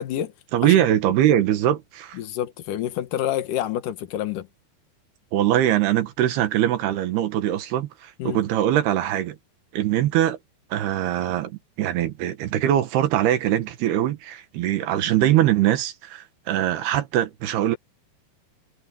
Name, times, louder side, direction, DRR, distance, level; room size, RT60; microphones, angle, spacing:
voice 1, 0.0-0.3 0.6-0.8 2.1-4.5 8.2-8.4, left 11 dB, 60° left, 2.4 m, -28 dB
voice 2, 0.5-2.2 5.3-9.4 9.7-10.4 10.7-17.8, right 12 dB, 70° right, 3.0 m, -22 dB
omnidirectional pair, 5.3 m